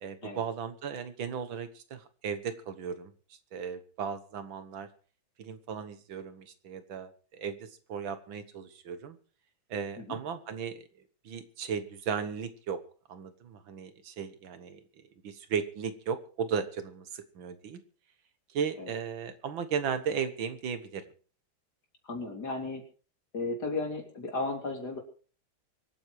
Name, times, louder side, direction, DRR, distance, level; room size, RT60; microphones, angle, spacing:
voice 1, 0.0-3.1 3.5-4.9 5.4-9.2 9.7-10.8 11.3-12.8 13.1-14.8 15.2-17.8 18.5-21.0, right 7 dB, 75° right, 11 dB, 2.1 m, -36 dB
voice 2, 22.0-22.8 23.3-25.0, left 3 dB, 55° left, 2 dB, 4.1 m, -34 dB
25.0 x 8.8 x 4.8 m, 0.41 s
omnidirectional pair, 2.2 m